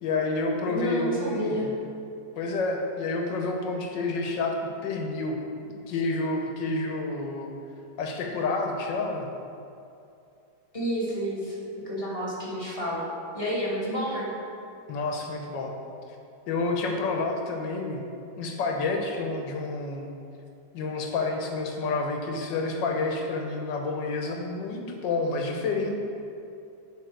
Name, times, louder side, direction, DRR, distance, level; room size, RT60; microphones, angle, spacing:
voice 1, 0.0-1.7 2.4-4.5 4.8-5.4 5.7-7.5 8.0-9.3 14.9-15.7 16.5-18.0 18.4-20.1 20.7-25.9, left 3 dB, 80° left, 2 dB, 1.6 m, -29 dB
voice 2, 0.7-1.7 10.7-11.6 11.8-13.0 13.3-14.3, equal, 20° left, -6 dB, 1.5 m, -30 dB
10.5 x 4.0 x 4.6 m, 2.6 s
omnidirectional pair, 1.9 m